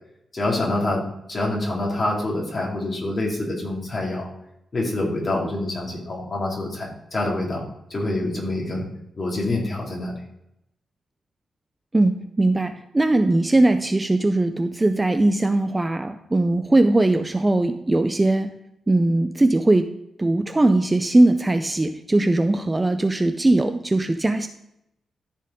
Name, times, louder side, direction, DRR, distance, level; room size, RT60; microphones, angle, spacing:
voice 1, 0.3-4.3 4.7-7.6 7.9-8.9 9.2-10.2, left 2 dB, 30° left, -3 dB, 2.4 m, -26 dB
voice 2, 11.9-18.6 18.9-19.9 20.2-24.5, right 2 dB, 15° right, 8 dB, 0.4 m, -20 dB
13.5 x 4.5 x 3.7 m, 0.83 s
wide cardioid pair, 150°, 0 cm